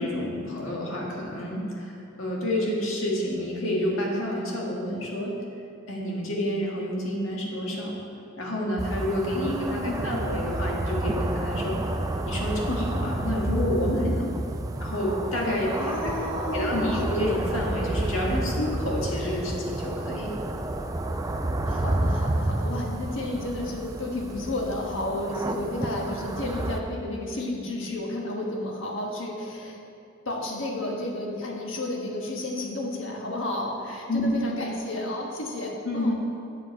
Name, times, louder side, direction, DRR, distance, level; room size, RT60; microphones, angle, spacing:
voice 1, 0.0-5.3 5.9-7.9 8.4-11.8 12.3-14.3 14.8-15.9 16.2-20.3 34.1-34.4 35.8-36.1, left 1 dB, 90° left, -3 dB, 1.7 m, -29 dB
sound 1, 8.8-26.8, right 1 dB, 15° right, 0.4 m, -30 dB
voice 2, 9.3-10.5 15.7-17.0 19.2-19.5 21.6-29.8 30.2-36.1, left 1 dB, 70° left, -1 dB, 1.4 m, -32 dB
8.2 x 7.4 x 4.2 m, 2.5 s
head